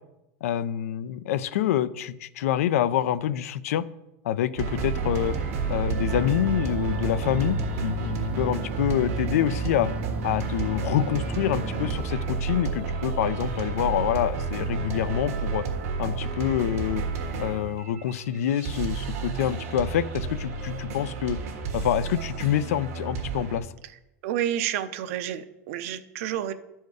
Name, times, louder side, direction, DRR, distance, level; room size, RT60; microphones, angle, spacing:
voice 1, 0.4-3.8 4.2-5.4 5.7-9.9 10.2-15.6 16.0-17.0 17.4-21.4 21.7-23.7, left 11 dB, 90° left, 15 dB, 0.5 m, -26 dB
sound 1, 4.6-23.6, right 4 dB, 85° right, 1.6 m, -31 dB
sound 2, 4.7-12.1, right 6 dB, 15° right, 0.6 m, -36 dB
voice 2, 24.2-26.5, right 11 dB, 70° right, 11 dB, 0.7 m, -29 dB
11.5 x 4.5 x 4.8 m, 0.92 s
supercardioid pair, 135°, 8 cm